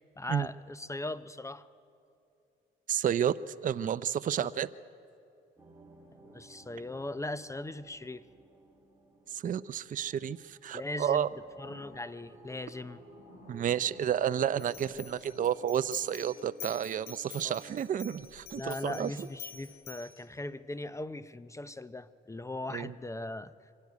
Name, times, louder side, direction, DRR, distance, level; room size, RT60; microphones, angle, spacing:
voice 1, 0.2-1.7 4.4-4.5 6.3-8.2 10.7-11.3 11.6-13.0 17.4-17.6 18.6-23.5, left 2 dB, 15° left, 15 dB, 0.6 m, -39 dB
voice 2, 2.9-4.7 9.3-11.3 13.5-19.1 22.7-22.9, right 9 dB, 40° right, 14 dB, 0.5 m, -31 dB
sound 1, 5.6-18.2, right 2 dB, 15° right, 3.9 m, -57 dB
sound 2, 11.3-16.7, left 1 dB, 45° left, 7.1 m, -57 dB
sound 3, 14.6-20.2, left 8 dB, 90° left, 2.0 m, -48 dB
24.5 x 13.0 x 9.5 m, 2.6 s
cardioid pair, 90°, 20 cm